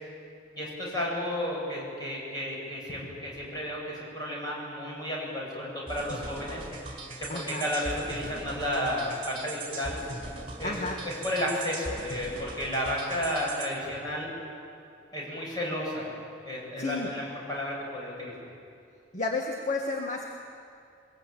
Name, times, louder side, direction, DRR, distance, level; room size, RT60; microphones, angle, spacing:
voice 1, 0.5-6.6 7.2-10.0 10.6-10.7 11.0-14.3 15.1-16.1 16.4-18.3, left 1 dB, 20° left, -4 dB, 8.0 m, -32 dB
sound 1, 5.9-13.7, right 2 dB, 30° right, 4.1 m, -40 dB
voice 2, 7.3-7.7 10.6-11.0 16.8-17.1 19.1-20.3, left 3 dB, 35° left, 1 dB, 1.7 m, -31 dB
22.5 x 22.5 x 9.0 m, 2.5 s
head